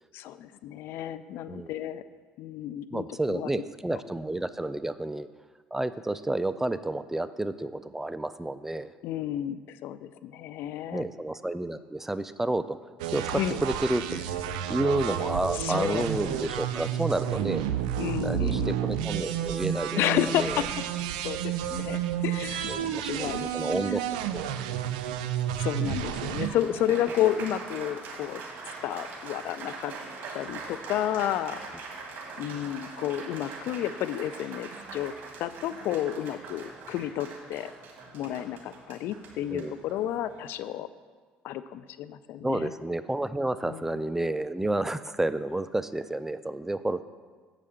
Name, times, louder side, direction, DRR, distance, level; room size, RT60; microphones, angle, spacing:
voice 1, 0.1-2.0 2.4-3.5 3.9-4.0 9.0-11.1 13.3-13.6 15.6-16.1 18.0-18.8 20.0-20.7 21.2-23.5 25.6-28.4 28.8-29.9 30.3-31.6 32.4-35.1 35.4-37.7 38.1-40.9 41.4-42.7 43.6-43.9, left 11 dB, 70° left, 14 dB, 0.4 m, -31 dB
voice 2, 2.9-5.3 5.7-8.9 10.9-12.8 13.1-14.2 14.7-17.6 18.1-20.0 20.4-20.6 22.7-24.0 24.3-24.5 39.5-39.8 42.4-47.0, right 1 dB, 10° right, 13 dB, 0.4 m, -30 dB
sound 1, 13.0-26.5, right 10 dB, 90° right, 0.4 m, -31 dB
Applause, 25.8-40.5, right 4 dB, 60° right, 1.8 m, -42 dB
7.4 x 5.0 x 7.1 m, 1.5 s
supercardioid pair, 75°, 4 cm